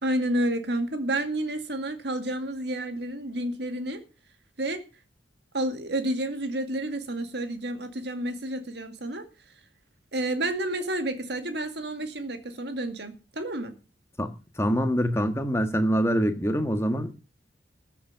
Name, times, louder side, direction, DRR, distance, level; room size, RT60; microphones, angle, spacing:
voice 1, 0.0-4.0 4.6-4.8 5.5-9.3 10.1-13.7, right 1 dB, 60° right, 2.1 m, -30 dB
voice 2, 14.6-17.1, equal, 15° left, 1.5 m, -24 dB
14.0 x 7.3 x 6.7 m
head